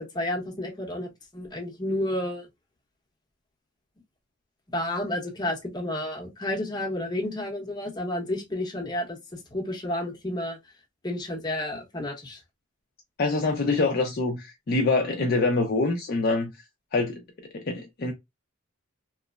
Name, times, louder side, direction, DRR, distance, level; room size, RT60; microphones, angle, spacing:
voice 1, 0.1-2.5 4.7-10.6 11.0-12.4, left 1 dB, 20° left, 0.8 m, -31 dB
voice 2, 13.2-16.5 16.9-17.2 17.5-18.1, left 3 dB, 45° left, 0.5 m, -25 dB
3.0 x 2.0 x 2.3 m
head